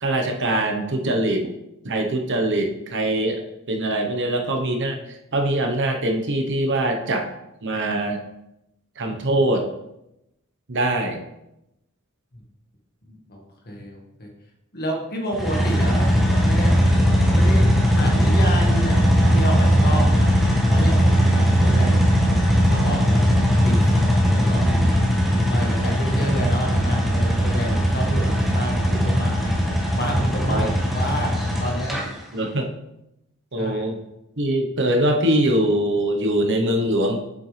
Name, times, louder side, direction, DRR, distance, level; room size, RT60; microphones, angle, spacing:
voice 1, 0.0-1.5 1.8-3.4 3.7-5.0 5.3-7.3 7.6-8.2 9.0-9.6 10.7-11.2 30.5-30.6 32.3-32.7 33.5-34.0 34.4-37.2, right 1 dB, 60° right, 3 dB, 1.1 m, -22 dB
voice 2, 13.1-14.3 14.7-20.3 20.7-22.1 22.6-23.4 23.6-25.0 25.5-32.0 33.6-33.8, equal, 45° left, 0 dB, 1.8 m, -29 dB
sound 1, 15.3-32.0, equal, ahead, 1.4 m, -19 dB
7.5 x 6.9 x 3.4 m, 0.86 s
head